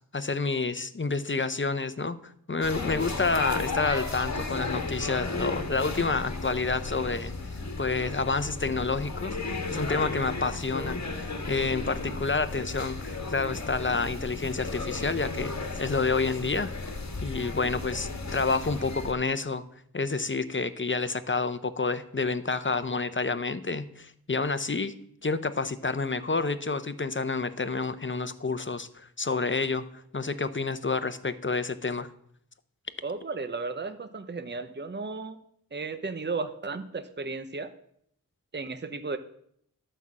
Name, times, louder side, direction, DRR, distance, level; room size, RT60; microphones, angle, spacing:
voice 1, 0.1-2.2 2.5-7.3 7.8-16.7 17.2-19.6 19.9-24.9 25.2-29.8 30.1-32.1, left 4 dB, 35° left, 13 dB, 0.8 m, -29 dB
sound 1, 2.6-19.1, left 3 dB, 50° left, 1.6 m, -34 dB
voice 2, 33.0-35.4 35.7-37.7 38.5-39.2, right 4 dB, 30° right, 11 dB, 0.8 m, -34 dB
12.0 x 5.6 x 7.4 m, 0.69 s
wide cardioid pair, 45°, 35 cm